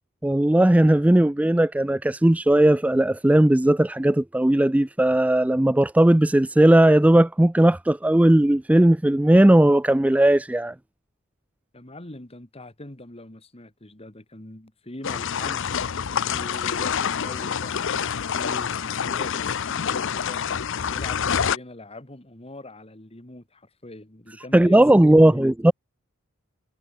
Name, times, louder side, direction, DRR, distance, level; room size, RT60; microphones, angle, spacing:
voice 1, 0.2-10.7 24.5-25.7, right 1 dB, 5° right, 0.3 m, -17 dB
voice 2, 11.7-15.7 16.3-20.4 20.9-25.5, left 1 dB, 25° left, 2.0 m, -42 dB
sound 1, 15.0-21.6, left 7 dB, 60° left, 0.6 m, -27 dB
head